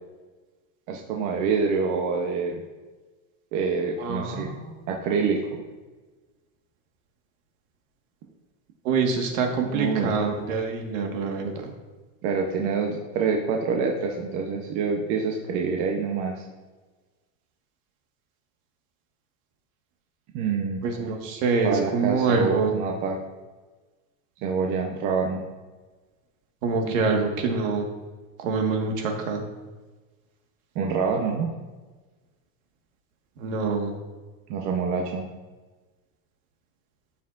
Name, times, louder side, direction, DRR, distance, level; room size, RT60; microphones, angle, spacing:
voice 1, 0.9-2.6 3.5-4.5 4.9-5.6 9.6-10.2 12.2-16.4 20.3-20.8 21.6-23.2 24.4-25.4 26.8-27.5 30.7-31.5 34.5-35.3, right 5 dB, 45° right, 1 dB, 0.9 m, -26 dB
voice 2, 4.0-4.8 8.8-11.7 20.8-22.7 26.6-27.9 28.4-29.4 33.4-33.9, right 4 dB, 70° right, 3 dB, 1.7 m, -25 dB
14.0 x 5.9 x 2.6 m, 1.3 s
supercardioid pair, 160°, 41 cm